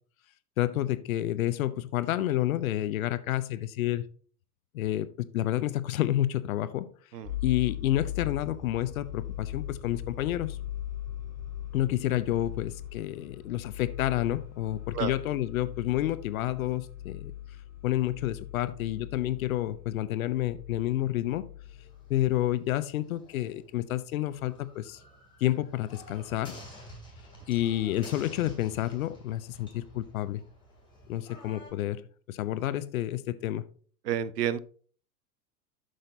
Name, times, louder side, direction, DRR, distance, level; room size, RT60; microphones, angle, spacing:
voice 1, 0.6-4.0 4.7-6.9 7.4-10.6 11.7-17.3 17.8-21.5 22.1-25.0 25.4-26.6 27.5-30.4 31.1-33.6, left 13 dB, 55° left, 14 dB, 0.7 m, -29 dB
sound 1, 7.2-22.5, left 11 dB, 30° left, 2.0 m, -40 dB
sound 2, 21.6-31.7, equal, 10° left, 2.9 m, -51 dB
voice 2, 34.0-34.6, right 10 dB, 75° right, 18 dB, 0.6 m, -30 dB
7.9 x 6.5 x 2.7 m, 0.43 s
figure-of-eight pair, 90°, 49 cm